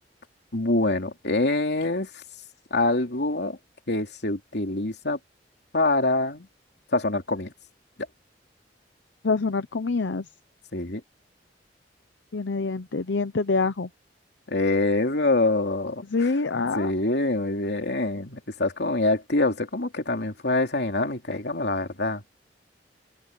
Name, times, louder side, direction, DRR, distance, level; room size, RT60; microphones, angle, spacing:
voice 1, 0.5-2.1 2.7-3.6 3.9-5.2 5.7-6.5 6.9-7.5 10.7-11.0 14.5-16.0 16.7-22.2, left 2 dB, 65° left, 3.1 m, -25 dB
voice 2, 9.2-10.3 12.3-13.9 16.1-16.9, left 4 dB, 85° left, 0.7 m, -26 dB
head